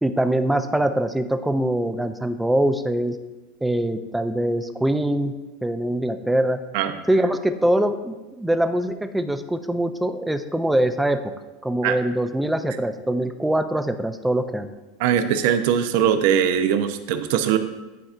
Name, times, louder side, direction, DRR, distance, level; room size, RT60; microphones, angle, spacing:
voice 1, 0.0-3.2 3.6-5.3 5.6-6.6 7.1-11.2 11.6-14.7, right 1 dB, 5° right, 8 dB, 0.4 m, -23 dB
voice 2, 15.0-17.6, right 9 dB, 70° right, 9 dB, 0.5 m, -21 dB
10.5 x 4.2 x 2.5 m, 1.1 s
supercardioid pair, 125°, 0 cm